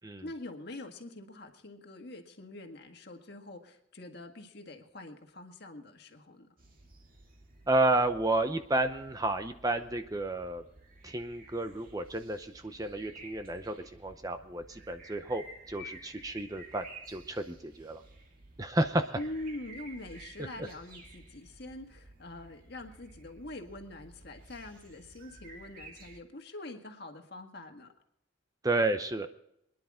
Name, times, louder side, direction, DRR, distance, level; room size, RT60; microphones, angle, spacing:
voice 1, 0.2-6.5 19.1-27.9, left 2 dB, 50° left, 4 dB, 1.8 m, -44 dB
sound 1, 6.6-26.2, right 2 dB, 45° right, 2.3 m, -53 dB
voice 2, 7.7-10.6 11.0-18.0 18.6-19.2 28.6-29.3, right 2 dB, 20° right, 8 dB, 0.7 m, -31 dB
25.5 x 10.5 x 3.7 m, 0.79 s
head